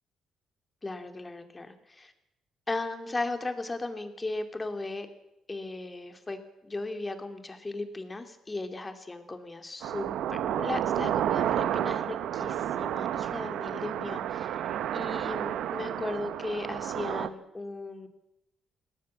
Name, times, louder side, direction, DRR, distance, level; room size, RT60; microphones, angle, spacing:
voice 1, 0.8-2.1 2.7-5.1 5.5-18.1, left 2 dB, 20° left, 7 dB, 2.6 m, -36 dB
sound 1, 9.8-17.3, right 10 dB, 80° right, 0.9 m, -31 dB
21.5 x 17.0 x 7.4 m, 0.90 s
cardioid pair, 90°, 0 cm